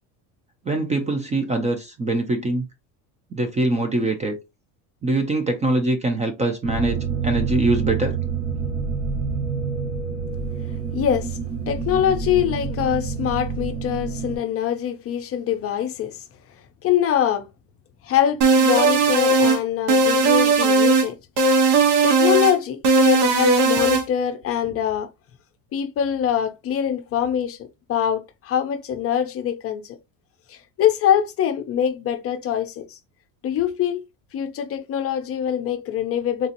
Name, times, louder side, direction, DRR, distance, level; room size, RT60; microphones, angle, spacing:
voice 1, 0.7-2.6 3.3-4.4 5.0-8.2, right 2 dB, 20° right, 0.4 m, -23 dB
sound 1, 6.6-14.4, right 5 dB, 35° right, 1.2 m, -27 dB
voice 2, 10.9-11.4 11.7-16.2 16.8-17.5 18.0-21.2 22.0-25.1 25.7-30.0 30.5-33.0 33.4-34.0 34.3-36.5, left 9 dB, 35° left, 0.5 m, -24 dB
sound 2, 18.4-19.6 19.9-21.1 21.4-22.6 22.8-24.0, right 3 dB, 80° right, 1.1 m, -17 dB
3.9 x 2.8 x 2.5 m
cardioid pair, 150°, 39 cm